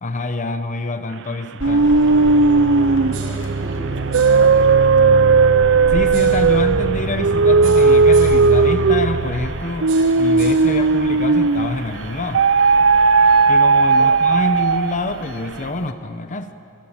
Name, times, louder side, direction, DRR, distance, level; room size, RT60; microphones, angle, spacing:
voice 1, 0.0-1.9 5.9-9.9 10.2-12.4 13.5-16.5, left 2 dB, 35° left, 9 dB, 1.0 m, -26 dB
sound 1, 1.6-15.9, left 2 dB, 55° left, 1.4 m, -36 dB
sound 2, 1.6-11.8 12.3-15.1, right 4 dB, 60° right, 0.6 m, -15 dB
voice 2, 2.7-4.5 14.0-14.2, right 1 dB, 35° right, -1 dB, 4.6 m, -35 dB
sound 3, 3.1-3.5 4.1-4.5 6.1-6.5 7.6-8.5 9.9-10.7, right 8 dB, 80° right, 6.1 m, -37 dB
26.0 x 25.5 x 8.9 m, 2.7 s
head